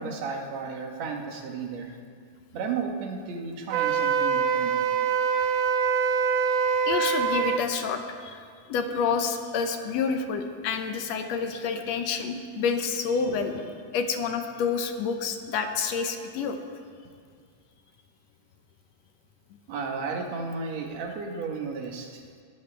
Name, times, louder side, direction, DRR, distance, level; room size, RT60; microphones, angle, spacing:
voice 1, 0.0-1.9 2.5-4.7 19.7-22.2, right 5 dB, 65° right, 2 dB, 2.4 m, -33 dB
Wind instrument woodwind instrument, 3.7-7.6, right 6 dB, 90° right, 2.1 m, -24 dB
voice 2, 6.9-16.6, left 5 dB, 70° left, 6 dB, 1.9 m, -29 dB
21.5 x 12.5 x 3.4 m, 2.1 s
omnidirectional pair, 3.5 m